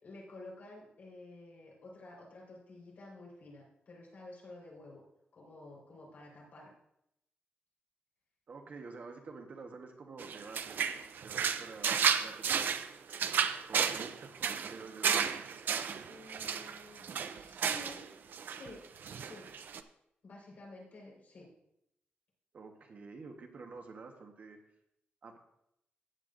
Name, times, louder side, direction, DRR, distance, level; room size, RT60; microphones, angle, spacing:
voice 1, 0.0-5.0 5.3-6.7 16.0-18.0 18.4-18.8 19.1-19.5 20.2-21.5, left 2 dB, 55° left, -3 dB, 4.5 m, -51 dB
voice 2, 8.5-10.8 11.2-12.7 13.7-15.1 22.5-24.6 25.2-25.4, right 4 dB, 50° right, 3 dB, 1.2 m, -49 dB
sound 1, 10.2-18.1 18.3-18.7 19.0-19.8, right 7 dB, 70° right, 0.5 m, -33 dB
15.0 x 9.5 x 2.6 m, 0.78 s
wide cardioid pair, 180°, 4 cm